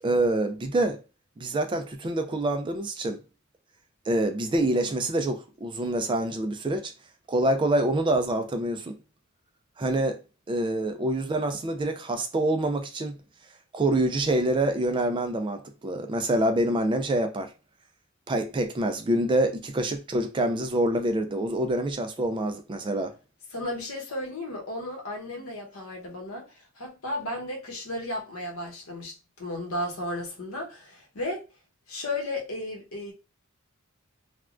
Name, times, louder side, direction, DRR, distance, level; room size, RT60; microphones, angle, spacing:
voice 1, 0.0-1.0 1.4-3.2 4.1-6.9 7.3-9.0 9.8-10.2 10.5-13.2 13.7-17.5 18.3-23.1, right 1 dB, 25° right, 0.3 m, -26 dB
voice 2, 23.5-31.4 31.9-33.1, left 1 dB, 80° left, 1.0 m, -34 dB
3.3 x 2.2 x 2.4 m
head